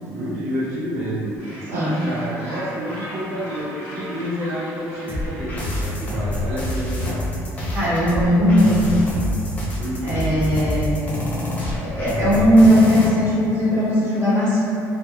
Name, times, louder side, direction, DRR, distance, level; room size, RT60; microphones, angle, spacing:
voice 1, 0.1-7.2 9.8-10.5, equal, 90° right, -11 dB, 0.5 m, -29 dB
Gull seagull, 1.4-6.4, equal, 40° left, 1.2 m, -39 dB
sound 1, 5.1-13.1, left 1 dB, 25° left, 0.4 m, -26 dB
voice 2, 7.7-9.0 10.0-10.9 11.8-14.7, equal, 40° right, -10 dB, 0.9 m, -17 dB
2.8 x 2.1 x 2.3 m, 2.9 s
cardioid pair, 150°, 6 cm